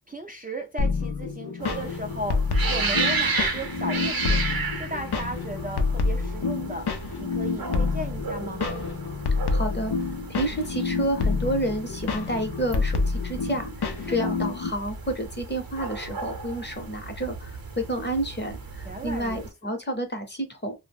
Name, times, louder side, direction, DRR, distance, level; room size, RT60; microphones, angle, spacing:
voice 1, 0.1-2.4 2.7-4.4 4.7-6.9 7.2-8.6 14.2-14.4 18.9-19.4, right 1 dB, 25° right, 0.3 m, -35 dB
sound 1, 0.8-14.7, left 4 dB, 90° left, 0.5 m, -28 dB
sound 2, 1.6-19.5, right 4 dB, 65° right, 0.7 m, -34 dB
voice 2, 9.5-9.9 10.3-20.7, right 1 dB, 30° left, 0.7 m, -30 dB
2.3 x 2.0 x 3.4 m
wide cardioid pair, 45°, 38 cm